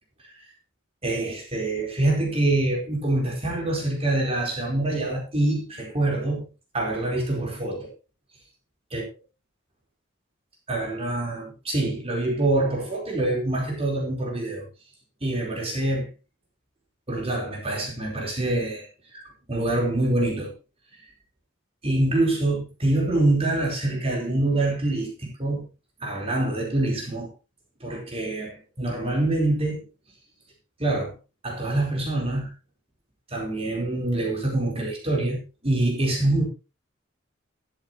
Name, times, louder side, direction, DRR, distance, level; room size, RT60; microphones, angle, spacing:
voice 1, 1.0-6.4 6.7-7.9 8.9-9.0 10.7-14.6 15.2-16.1 17.1-18.9 19.1-19.2 19.5-20.5 21.8-25.7 26.0-27.3 27.8-29.8 30.8-31.1 31.4-32.5 33.3-36.4, right 2 dB, 30° right, 4.3 m, -25 dB
13.0 x 13.0 x 3.1 m
head